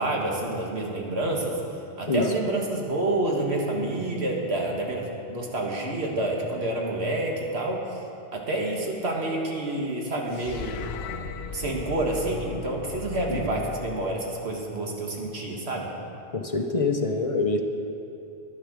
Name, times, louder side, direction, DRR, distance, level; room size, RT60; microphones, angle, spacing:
voice 1, 0.0-1.6 2.0-8.0 8.3-10.8 11.5-15.9, right 2 dB, 75° right, -1 dB, 1.9 m, -28 dB
sound 1, 10.3-14.7, left 4 dB, 75° left, 0.8 m, -38 dB
voice 2, 13.3-13.6 16.3-17.6, left 3 dB, 35° left, 4 dB, 0.7 m, -25 dB
10.5 x 10.0 x 6.2 m, 2.7 s
omnidirectional pair, 1.1 m